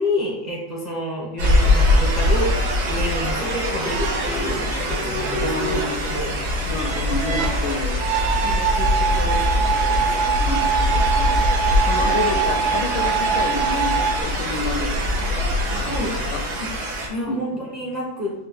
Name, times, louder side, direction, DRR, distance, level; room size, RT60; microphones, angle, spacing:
voice 1, 0.0-2.5 2.8-6.4 8.4-10.2 15.8-16.1 16.6-18.3, left 1 dB, 40° right, -5 dB, 0.6 m, -29 dB
sound 1, 1.4-17.1, left 1 dB, 90° right, 1.9 m, -22 dB
sound 2, 3.9-14.2, right 6 dB, 70° right, 1.1 m, -24 dB
voice 2, 5.4-6.0 6.6-8.6 10.4-16.4 17.3-17.6, left 3 dB, 80° left, 6 dB, 1.3 m, -30 dB
5.2 x 2.4 x 3.9 m, 0.85 s
omnidirectional pair, 2.1 m